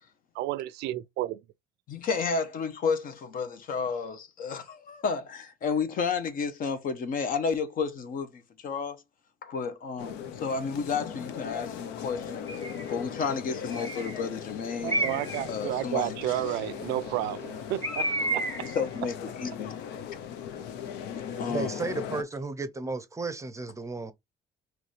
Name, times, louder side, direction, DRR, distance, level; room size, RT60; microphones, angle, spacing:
voice 1, 0.3-1.4 14.8-18.5, right 15 dB, 85° right, 0.4 m, -31 dB
voice 2, 1.9-9.0 9.4-12.4 12.9-15.0 15.5-16.4 18.6-19.8 21.4-21.7, left 5 dB, 55° left, 0.9 m, -31 dB
sound 1, 10.0-22.2, left 8 dB, 90° left, 0.7 m, -38 dB
Bird, 12.5-12.9 13.7-14.2 14.9-15.5 17.8-18.8, right 2 dB, 15° left, 1.4 m, -31 dB
voice 3, 21.5-24.1, right 3 dB, 20° right, 0.6 m, -33 dB
3.9 x 3.1 x 3.2 m
cardioid pair, 110°, 17 cm